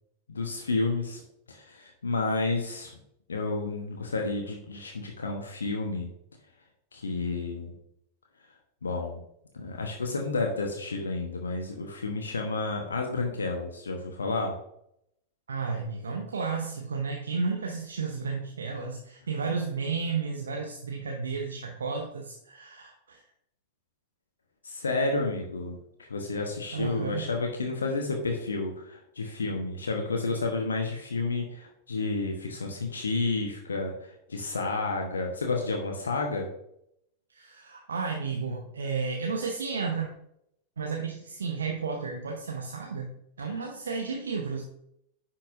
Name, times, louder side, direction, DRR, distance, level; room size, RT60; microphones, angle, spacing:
voice 1, 0.3-1.2 1.5-2.9 3.3-6.1 6.9-7.7 8.8-9.2 9.5-14.6 24.6-36.5 43.4-43.6, left 3 dB, 75° left, 2 dB, 1.0 m, -31 dB
voice 2, 15.5-23.2 26.7-27.3 37.3-40.1 40.8-43.1 43.4-44.6, right 5 dB, 70° right, 1 dB, 0.9 m, -32 dB
10.0 x 5.8 x 2.6 m, 0.75 s
figure-of-eight pair, 90°, 0 cm